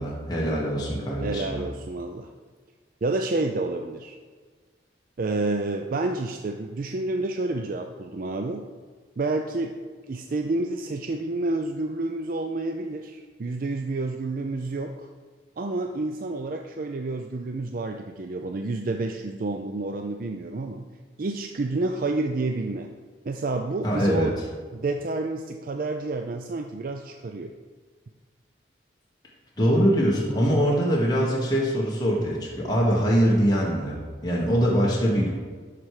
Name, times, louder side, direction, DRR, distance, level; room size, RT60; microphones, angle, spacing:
voice 1, 0.0-1.6 23.8-24.3 29.6-35.3, equal, 20° left, -4 dB, 1.4 m, -23 dB
voice 2, 1.2-2.3 3.0-4.2 5.2-8.7 9.2-9.7 10.1-15.1 15.6-20.9 21.2-22.9 23.2-24.4 24.7-27.5, right 2 dB, 50° right, 4 dB, 0.4 m, -29 dB
11.5 x 4.6 x 4.9 m, 1.5 s
head